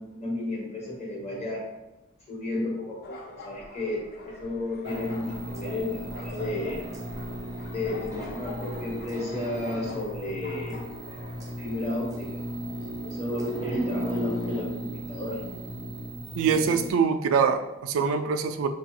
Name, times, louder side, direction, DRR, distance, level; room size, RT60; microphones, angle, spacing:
voice 1, 0.0-1.6 2.3-6.8 7.7-10.8 11.6-12.4 13.0-15.4, left 1 dB, 30° left, -3 dB, 1.1 m, -32 dB
sound 1, 3.0-11.5, left 1 dB, 50° left, 0.6 m, -44 dB
sound 2, 4.8-16.9, equal, 15° right, 0.5 m, -36 dB
voice 2, 16.4-18.7, right 6 dB, 80° right, 7 dB, 0.3 m, -24 dB
4.9 x 2.3 x 2.9 m, 0.97 s
head